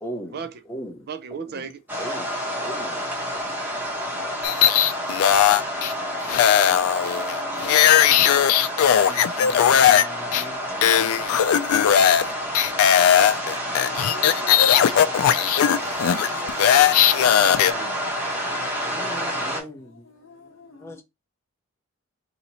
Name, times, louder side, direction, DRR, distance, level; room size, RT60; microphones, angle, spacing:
voice 1, 0.0-0.4 0.7-1.0 1.5-1.6 2.0-2.2 2.6-3.0 4.1-4.2 9.1-11.1 18.8-19.9 20.8-21.0, equal, 10° left, 0.6 m, -38 dB
voice 2, 1.1-1.8 4.0-4.7 17.4-18.1, right 5 dB, 50° right, 0.5 m, -37 dB
sound 1, 1.9-19.6, equal, 10° right, 0.9 m, -29 dB
sound 2, 4.4-5.9 6.3-10.0 10.3-10.4 10.8-12.3 12.5-17.7, left 9 dB, 90° left, 0.3 m, -18 dB
voice 3, 5.5-6.1 6.7-10.4 13.7-15.8 16.3-17.5 19.0-21.0, left 2 dB, 65° left, 1.0 m, -45 dB
2.8 x 2.8 x 4.1 m
head